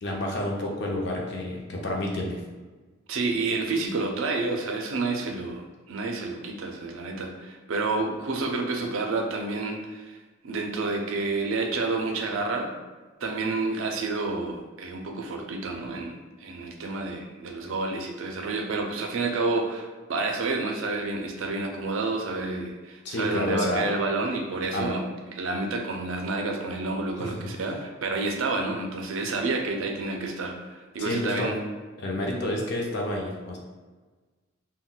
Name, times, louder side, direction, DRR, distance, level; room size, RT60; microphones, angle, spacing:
voice 1, 0.0-2.4 23.0-23.9 24.7-24.9 27.2-27.5 31.0-31.5 32.0-33.6, left 1 dB, 55° left, 0 dB, 0.5 m, -29 dB
voice 2, 3.1-10.2 10.4-12.7 13.2-31.6, right 3 dB, 70° right, 3 dB, 0.4 m, -29 dB
2.2 x 2.2 x 3.8 m, 1.3 s
head